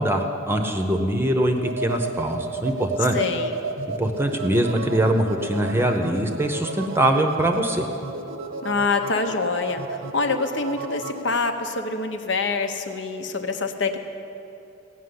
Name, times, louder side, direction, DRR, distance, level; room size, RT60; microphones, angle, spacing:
voice 1, 0.0-3.2 4.0-7.9, right 1 dB, 10° right, 5 dB, 0.8 m, -22 dB
sound 1, 1.5-11.3, right 3 dB, 85° right, 0.8 m, -33 dB
voice 2, 3.1-3.6 8.6-14.0, left 4 dB, 65° left, 6 dB, 0.9 m, -25 dB
15.5 x 6.0 x 9.6 m, 2.8 s
head